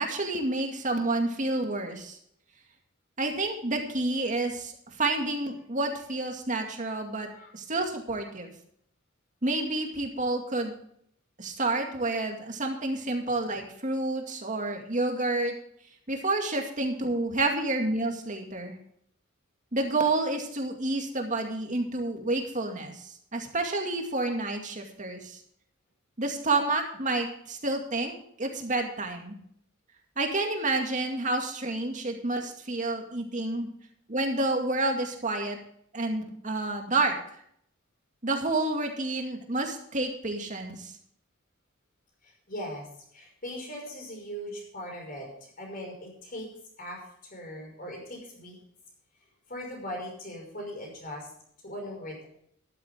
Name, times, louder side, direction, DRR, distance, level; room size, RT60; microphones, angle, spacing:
voice 1, 0.0-2.2 3.2-4.7 5.0-8.5 9.4-10.7 11.4-15.5 16.1-18.8 19.7-25.4 26.2-29.4 30.2-33.7 34.1-35.6 35.9-37.2 38.2-40.9, right 2 dB, 35° right, 3 dB, 2.2 m, -29 dB
voice 2, 42.2-42.9 43.1-46.5 46.8-47.0 47.3-48.6 49.5-51.3 51.6-52.2, equal, 45° left, 0 dB, 5.5 m, -39 dB
13.5 x 11.5 x 3.6 m, 0.66 s
head